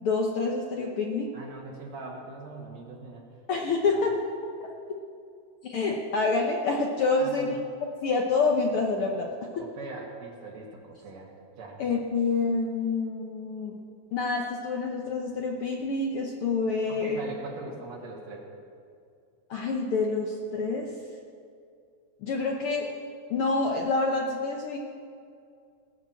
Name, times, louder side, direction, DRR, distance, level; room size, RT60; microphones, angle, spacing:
voice 1, 0.0-1.3 3.5-4.1 4.6-4.7 5.6-7.6 8.0-9.3 9.6-9.7 11.8-13.7 14.1-17.2 19.5-20.9 22.2-22.9 23.3-24.8, left 3 dB, 65° left, 0 dB, 1.4 m, -27 dB
voice 2, 1.3-3.3 3.8-4.1 7.2-7.6 9.6-11.3 11.6-11.8 16.9-18.5, right 3 dB, 65° right, -1 dB, 3.1 m, -41 dB
19.0 x 6.6 x 7.6 m, 2.3 s
omnidirectional pair, 3.4 m